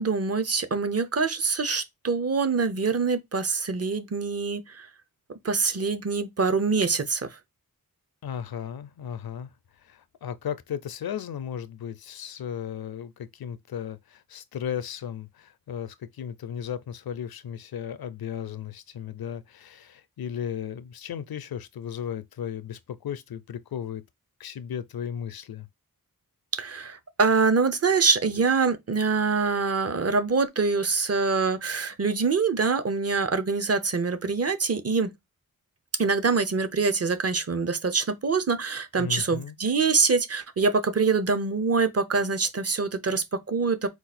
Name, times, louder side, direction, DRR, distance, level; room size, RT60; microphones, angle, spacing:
voice 1, 0.0-4.9 5.4-7.3 26.6-35.1 36.0-43.9, right 4 dB, 40° right, 0.7 m, -25 dB
voice 2, 8.2-9.5 9.8-24.0 24.4-25.7 39.0-39.6, left 8 dB, 80° left, 0.5 m, -35 dB
4.7 x 2.4 x 4.2 m
wide cardioid pair, 85°, 36 cm